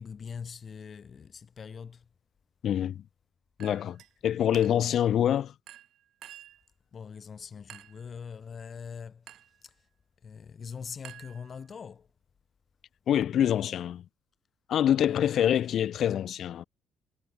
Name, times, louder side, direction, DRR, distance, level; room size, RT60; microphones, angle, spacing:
voice 1, 0.0-2.1 4.3-4.5 6.9-9.9 10.2-12.1 15.1-15.7, left 6 dB, 35° left, 3.1 m, -43 dB
voice 2, 2.6-3.0 3.6-5.5 13.1-14.0 14.7-16.6, left 10 dB, 55° left, 0.9 m, -26 dB
Chink clink, 3.6-4.1 4.5-5.0 5.7-6.6 7.7-8.1 9.3-9.6 11.0-11.8, right 11 dB, 65° right, 3.4 m, -50 dB
cardioid pair, 115°, 0 cm